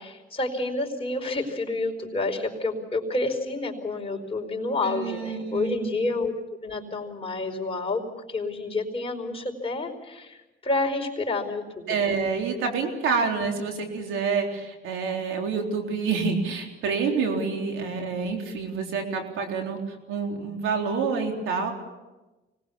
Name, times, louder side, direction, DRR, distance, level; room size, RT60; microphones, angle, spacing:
voice 1, 0.0-6.3 6.6-8.0 8.3-12.1, left 2 dB, 30° left, 1 dB, 4.8 m, -29 dB
voice 2, 4.8-5.9 11.9-21.7, right 5 dB, 90° right, 2 dB, 3.9 m, -28 dB
25.0 x 19.5 x 7.2 m, 1.1 s
cardioid pair, 90°, 20 cm